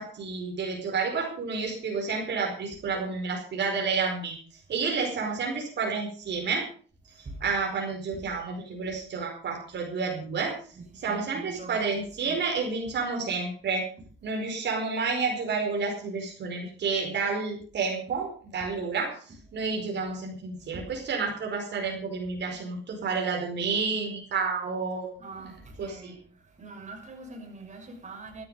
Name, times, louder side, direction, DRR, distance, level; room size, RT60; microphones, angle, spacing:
voice 1, 0.0-4.4 4.7-6.7 7.4-10.6 10.9-13.9 14.2-25.1 25.4-25.5 25.8-26.1, right 4 dB, 60° right, 1 dB, 5.1 m, -30 dB
voice 2, 11.1-12.3 20.7-20.8 25.2-26.2 26.6-28.4, right 3 dB, 35° right, 2 dB, 6.1 m, -43 dB
15.5 x 12.5 x 5.6 m, 0.43 s
cardioid pair, 90°, 20 cm